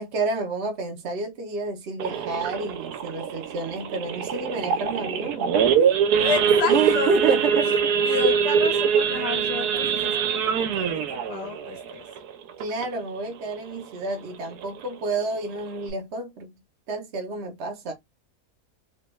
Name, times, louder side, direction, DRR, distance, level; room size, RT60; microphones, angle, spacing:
voice 1, 0.0-5.6 6.6-7.9 12.6-16.5 16.9-17.9, right 3 dB, 60° right, 0.7 m, -29 dB
Idling / Accelerating revving vroom / Sawing, 2.0-13.1 13.5-13.7 13.9-14.0 14.5-14.8 15.3-15.4 15.6-15.9, right 7 dB, 80° right, 1.1 m, -24 dB
voice 2, 6.1-7.1 7.6-7.7 8.0-12.0, left 6 dB, 85° left, 1.4 m, -31 dB
3.2 x 2.2 x 3.0 m
omnidirectional pair, 1.7 m